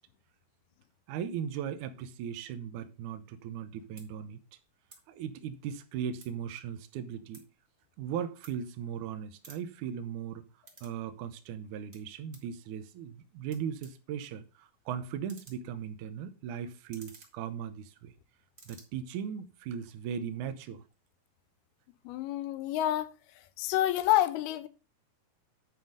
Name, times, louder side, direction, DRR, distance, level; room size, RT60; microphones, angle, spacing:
voice 1, 1.1-4.4 5.1-7.4 8.0-10.5 10.8-18.1 18.7-20.8, right 8 dB, 80° right, 1.8 m, -38 dB
sound 1, 3.4-3.6 3.9-4.1 4.8-5.0 5.4-6.5 6.9-9.0 9.3-11.0 11.3-12.5 13.2-13.3 13.5-18.2 18.4-18.8, right 2 dB, 50° right, 0.7 m, -57 dB
voice 2, 22.1-23.1 23.6-24.7, left 13 dB, 80° left, 2.6 m, -28 dB
9.4 x 4.5 x 5.3 m
omnidirectional pair, 4.6 m